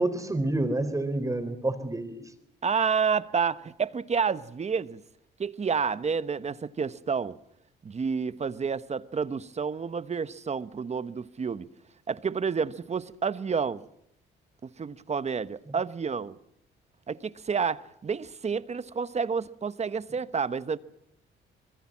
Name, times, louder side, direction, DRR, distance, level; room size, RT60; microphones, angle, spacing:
voice 1, 0.0-2.2 15.7-15.8, right 2 dB, 15° right, 3.7 m, -28 dB
voice 2, 2.6-5.0 5.4-7.4 7.8-11.7 12.1-13.8 14.6-16.4 17.1-20.8, right 6 dB, 35° right, 1.0 m, -29 dB
25.5 x 21.0 x 7.3 m
cardioid pair, 90°, 20 cm